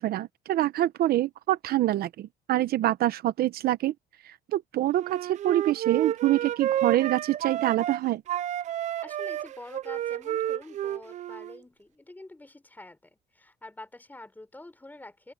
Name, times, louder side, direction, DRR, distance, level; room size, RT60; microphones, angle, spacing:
voice 1, 0.0-3.9 4.2-8.2, right 14 dB, 65° right, 0.8 m, -26 dB
Wind instrument woodwind instrument, 5.0-8.0 8.3-11.6, right 11 dB, 45° right, 0.4 m, -30 dB
voice 2, 9.0-15.3, left 2 dB, 10° left, 4.4 m, -46 dB
open air
cardioid pair, 110°, 17 cm